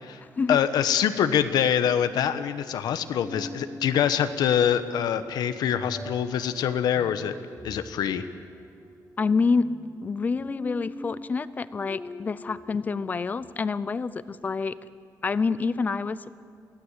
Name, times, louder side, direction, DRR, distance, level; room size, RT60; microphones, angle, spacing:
voice 1, 0.5-7.4 7.6-8.2, left 9 dB, 80° left, 11 dB, 1.1 m, -24 dB
sound 1, 3.2-13.5, equal, ahead, 0.8 m, -44 dB
voice 2, 9.2-9.7 10.0-14.8 15.2-16.3, left 4 dB, 25° left, 16 dB, 0.5 m, -27 dB
23.5 x 17.0 x 8.2 m, 2.2 s
wide cardioid pair, 180°, 7 cm